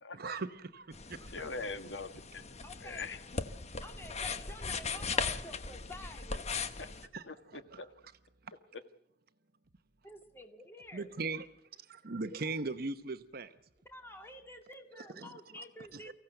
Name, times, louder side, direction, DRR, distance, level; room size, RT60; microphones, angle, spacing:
voice 1, 0.1-1.3 7.1-7.2 7.5-7.8 10.9-11.4 11.9-13.5 15.2-15.3 15.9-16.1, right 3 dB, 55° right, 0.9 m, -39 dB
sound 1, 0.9-7.1, left 4 dB, 40° left, 1.1 m, -38 dB
voice 2, 1.3-3.4 6.8-6.9 7.3-7.9, left 3 dB, 75° left, 1.5 m, -43 dB
voice 3, 2.6-3.1 3.8-6.6 10.0-11.1 13.9-16.1, left 1 dB, 15° left, 2.4 m, -50 dB
24.5 x 15.5 x 7.9 m
head